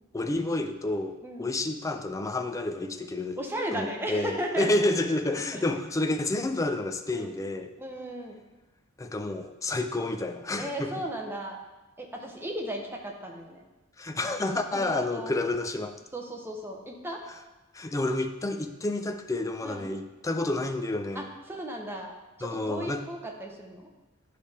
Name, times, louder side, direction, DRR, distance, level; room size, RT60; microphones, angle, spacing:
voice 1, 0.1-3.4 3.7-7.7 9.0-10.9 14.0-16.0 17.7-21.3 22.4-23.0, left 2 dB, 15° left, 7 dB, 0.4 m, -29 dB
voice 2, 3.4-4.7 5.5-5.6 7.1-7.3 7.8-8.4 10.6-11.6 12.0-13.6 14.7-15.3 16.1-17.2 19.6-19.9 21.1-22.1 22.4-23.9, right 1 dB, 10° right, 0 dB, 0.8 m, -35 dB
9.9 x 3.4 x 4.2 m, 1.1 s
head